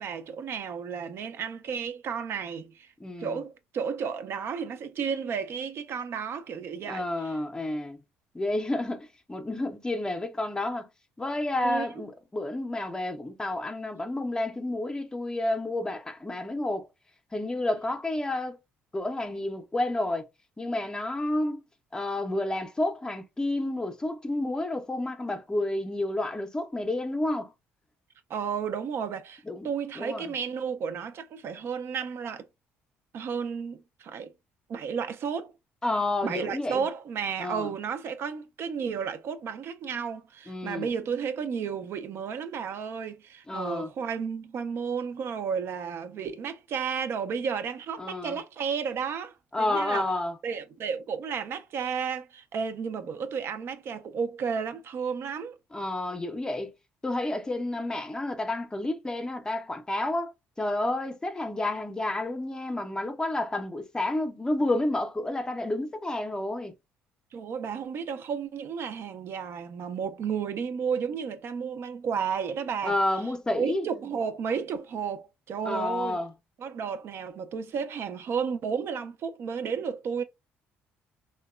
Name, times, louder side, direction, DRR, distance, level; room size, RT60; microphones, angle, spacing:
voice 1, 0.0-2.9 3.2-7.1 11.6-12.0 28.3-32.5 33.1-34.3 34.7-35.5 36.2-50.1 50.4-55.6 67.3-73.0 73.5-76.2 76.6-80.2, right 6 dB, 55° right, 0.4 m, -32 dB
voice 2, 3.0-3.4 6.9-8.0 8.3-10.9 11.2-16.9 17.3-18.6 18.9-20.3 20.6-21.6 21.9-27.5 29.5-29.7 30.0-30.3 35.8-36.8 37.4-37.7 40.5-40.9 43.5-43.9 48.0-48.4 49.5-50.4 55.7-56.7 57.0-66.7 72.8-73.9 75.6-76.3, left 2 dB, 15° left, 0.5 m, -30 dB
2.8 x 2.1 x 2.3 m
cardioid pair, 90°, 5 cm